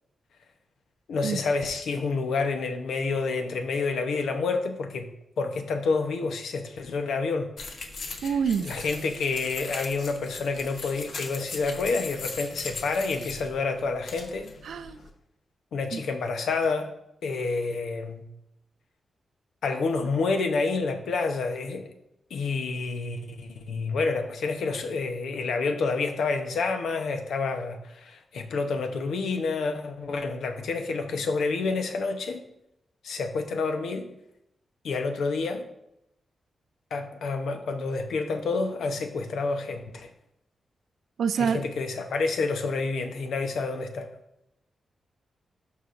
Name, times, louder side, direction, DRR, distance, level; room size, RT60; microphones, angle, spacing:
voice 1, 1.1-5.1 5.4-7.5 8.2-14.5 15.7-16.9 17.2-18.2 19.6-21.9 22.3-32.4 33.0-34.1 34.8-35.7 36.9-40.1 41.4-44.1, left 4 dB, 90° left, 6 dB, 0.9 m, -28 dB
sound 1, 7.6-15.1, left 3 dB, 65° left, 1.0 m, -39 dB
voice 2, 8.2-8.7 14.6-15.0 15.9-16.0 41.2-41.6, right 7 dB, 80° right, 13 dB, 0.4 m, -26 dB
12.0 x 4.9 x 2.6 m, 0.82 s
wide cardioid pair, 135°, 0 cm